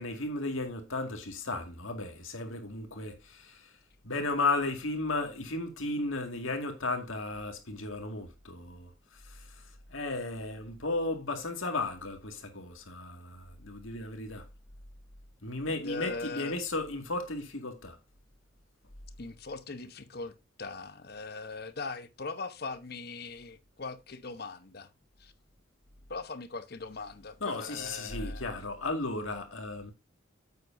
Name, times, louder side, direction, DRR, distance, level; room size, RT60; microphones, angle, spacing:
voice 1, 0.0-3.7 4.0-8.9 9.3-9.4 9.9-14.4 15.4-18.0 27.4-29.9, left 2 dB, 80° left, 2.0 m, -34 dB
voice 2, 15.7-16.6 19.2-20.3 20.6-24.9 25.2-25.3 26.1-28.5, left 3 dB, 50° left, 0.9 m, -40 dB
9.5 x 8.1 x 2.6 m
head